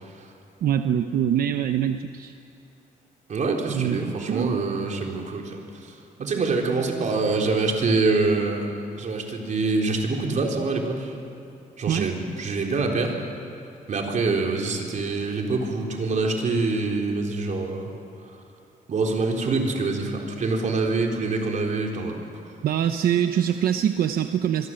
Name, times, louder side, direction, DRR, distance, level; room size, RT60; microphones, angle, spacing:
voice 1, 0.6-2.3 3.7-4.6 11.9-12.1 22.6-24.7, right 9 dB, 90° right, 8 dB, 0.8 m, -24 dB
voice 2, 3.3-8.7 9.0-11.1 11.8-13.2 13.9-17.9 18.9-22.2, right 3 dB, 55° right, 1 dB, 4.0 m, -25 dB
25.5 x 22.5 x 7.8 m, 2.7 s
cardioid pair, 115°, 15 cm